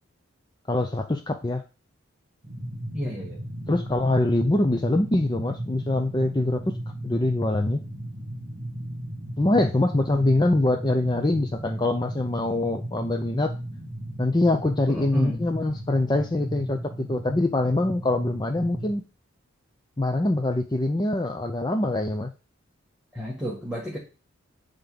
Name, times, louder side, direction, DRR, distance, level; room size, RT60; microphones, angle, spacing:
voice 1, 0.7-1.6 3.7-6.6 7.0-7.8 9.4-13.5 14.2-19.0 20.0-22.3, left 2 dB, 20° left, 5 dB, 0.6 m, -24 dB
sound 1, 2.4-18.9, right 1 dB, 30° right, 2.7 m, -36 dB
voice 2, 2.9-3.4 14.9-15.4 23.1-24.0, equal, 5° right, -4 dB, 1.8 m, -31 dB
9.3 x 3.7 x 7.0 m, 0.33 s
head